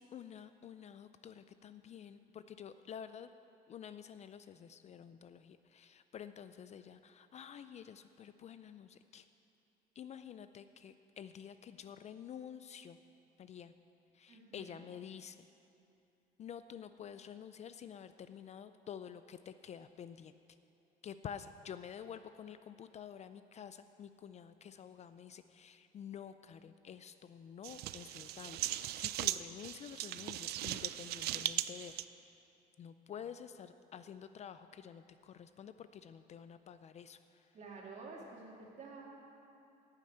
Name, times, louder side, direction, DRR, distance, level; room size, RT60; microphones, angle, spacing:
voice 1, 0.0-3.3 3.7-9.3 10.0-13.0 13.4-13.7 14.1-15.5 16.4-20.3 21.0-31.9 32.8-37.5, left 8 dB, 40° left, 11 dB, 0.4 m, -50 dB
voice 2, 14.3-14.9 37.5-39.1, right 3 dB, 45° right, -2 dB, 2.5 m, -50 dB
sound 1, 27.6-32.0, right 14 dB, 70° right, 0.4 m, -38 dB
9.9 x 7.5 x 8.6 m, 2.7 s
cardioid pair, 110°, 17 cm